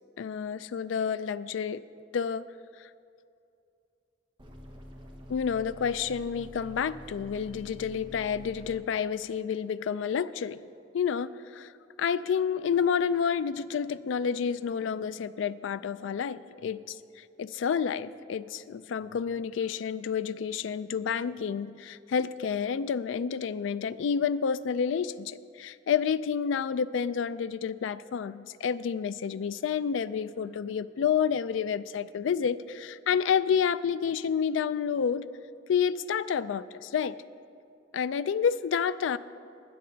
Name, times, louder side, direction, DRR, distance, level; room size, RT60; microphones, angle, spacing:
voice 1, 0.2-1.8 2.1-2.4 5.3-10.6 10.9-11.7 12.0-35.2 35.7-37.2 37.9-39.2, left 7 dB, 75° left, 16 dB, 0.3 m, -29 dB
sound 1, 4.4-8.8, equal, 25° right, 1.1 m, -47 dB
19.5 x 6.6 x 3.9 m, 2.5 s
head